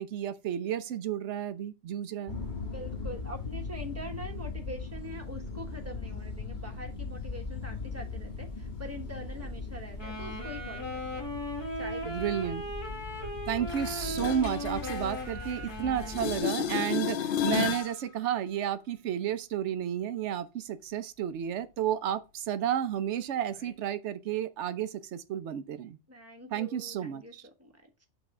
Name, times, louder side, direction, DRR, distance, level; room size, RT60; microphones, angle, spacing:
voice 1, 0.0-2.4 12.0-12.6 13.5-26.0 26.5-27.4, right 10 dB, 75° right, 1.0 m, -32 dB
sound 1, 2.3-16.4, left 4 dB, 45° left, 1.3 m, -39 dB
voice 2, 2.6-11.4 11.8-12.2 15.4-16.1 26.1-28.1, equal, 15° right, 1.2 m, -44 dB
Wind instrument woodwind instrument, 9.9-16.9, equal, 20° left, 1.5 m, -38 dB
sound 2, 13.7-15.8 16.0-17.9 23.7-23.8, left 9 dB, 60° left, 0.6 m, -32 dB
6.3 x 4.0 x 4.8 m
omnidirectional pair, 1.2 m